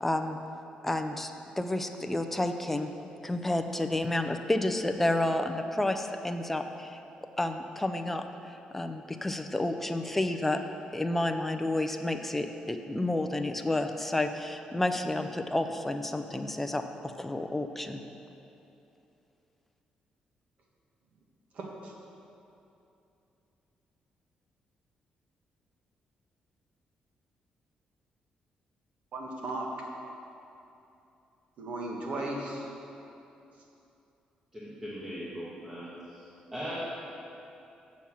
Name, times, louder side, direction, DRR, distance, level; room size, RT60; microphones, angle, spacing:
voice 1, 0.0-0.4 0.8-2.9 3.2-7.0 7.4-10.6 10.9-18.0, left 1 dB, 10° left, 6 dB, 0.4 m, -30 dB
voice 2, 21.5-21.9 29.1-29.7 31.6-32.7, right 2 dB, 60° right, -1 dB, 1.5 m, -36 dB
voice 3, 34.5-36.9, equal, 15° right, -8 dB, 1.4 m, -39 dB
7.0 x 6.3 x 7.2 m, 2.8 s
cardioid pair, 140°, 3 cm